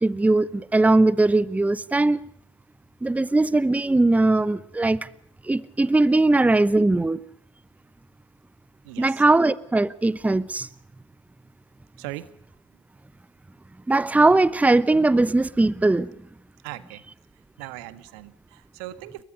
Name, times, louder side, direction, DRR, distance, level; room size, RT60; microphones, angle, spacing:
voice 1, 0.0-2.2 3.0-5.1 5.4-7.2 9.0-10.7 13.9-16.1, right 2 dB, 10° right, 0.9 m, -20 dB
voice 2, 8.8-9.2 12.0-12.3 16.6-17.0 17.6-19.2, right 16 dB, 65° right, 1.5 m, -39 dB
28.5 x 22.5 x 5.3 m
figure-of-eight pair, 60°, 15 cm